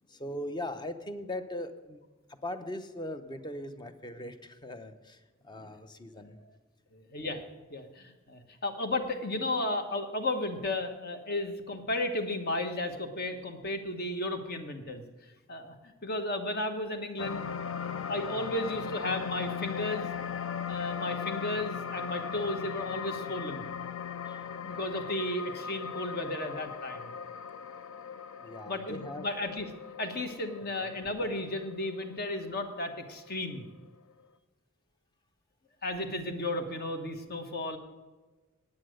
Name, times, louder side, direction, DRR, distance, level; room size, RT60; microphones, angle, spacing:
voice 1, 0.0-2.0 2.3-6.4 17.8-18.0 24.3-24.4 28.4-29.3 30.8-31.0, left 1 dB, 20° left, 9 dB, 0.7 m, -40 dB
voice 2, 6.9-7.4 7.7-15.0 15.5-17.5 17.8-20.1 20.7-23.6 24.6-27.1 28.7-29.7 30.0-33.7 35.8-37.8, left 2 dB, 50° left, 6 dB, 1.2 m, -34 dB
sound 1, 17.2-33.7 34.1-34.2, left 7 dB, 70° left, 0.5 m, -39 dB
9.8 x 8.7 x 6.3 m, 1.2 s
head